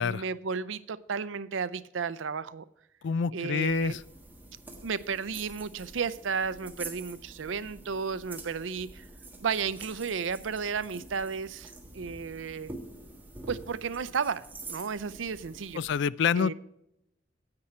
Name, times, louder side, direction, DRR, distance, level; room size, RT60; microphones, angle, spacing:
voice 1, 0.0-2.6 3.3-4.0 4.8-9.1 9.4-12.7 13.5-15.8 16.4-16.5, right 6 dB, 85° right, 0.5 m, -33 dB
voice 2, 3.0-4.0 15.7-16.5, left 6 dB, 65° left, 0.4 m, -27 dB
sound 1, 3.7-16.0, right 2 dB, 10° right, 1.4 m, -46 dB
9.7 x 8.7 x 4.4 m
head